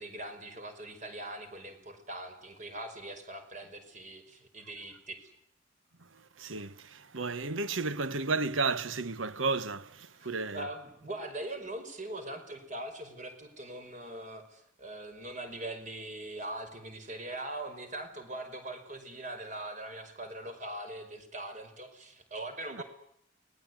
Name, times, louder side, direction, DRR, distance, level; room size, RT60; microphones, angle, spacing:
voice 1, 0.0-5.3 10.2-10.3 10.5-22.8, right 1 dB, 40° right, 5.4 m, -41 dB
voice 2, 6.0-10.7 22.7-22.8, right 4 dB, 90° right, 1.2 m, -33 dB
29.5 x 20.0 x 9.6 m
head